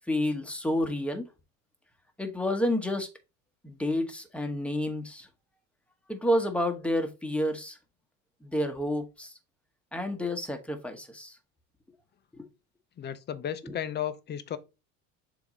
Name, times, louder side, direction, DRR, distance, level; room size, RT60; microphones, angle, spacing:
voice 1, 0.1-1.3 2.2-3.1 3.6-5.3 6.1-7.8 8.4-9.4 9.9-11.4 12.3-12.5 13.6-13.8, left 1 dB, 5° left, 1.2 m, -30 dB
voice 2, 13.0-14.6, left 10 dB, 30° left, 0.7 m, -34 dB
7.0 x 2.9 x 5.1 m
supercardioid pair, 120°, 33 cm